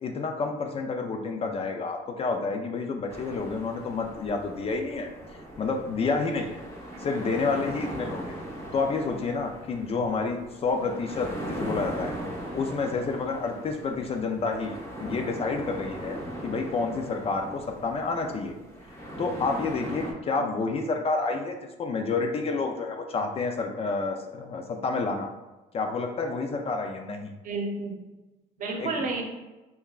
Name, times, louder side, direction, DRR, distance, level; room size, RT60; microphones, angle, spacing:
voice 1, 0.0-6.6 7.0-8.3 8.7-12.1 12.5-18.6 19.2-25.3 25.7-27.3 28.8-28.9, left 4 dB, 35° left, 4 dB, 0.4 m, -29 dB
sound 1, 3.1-20.1, equal, 15° left, 0.9 m, -39 dB
voice 2, 6.9-7.2 14.0-14.2 20.4-20.5 27.4-28.0 28.6-29.2, right 3 dB, 50° right, 1 dB, 0.8 m, -32 dB
5.4 x 2.2 x 2.3 m, 1.1 s
cardioid pair, 110°, 17 cm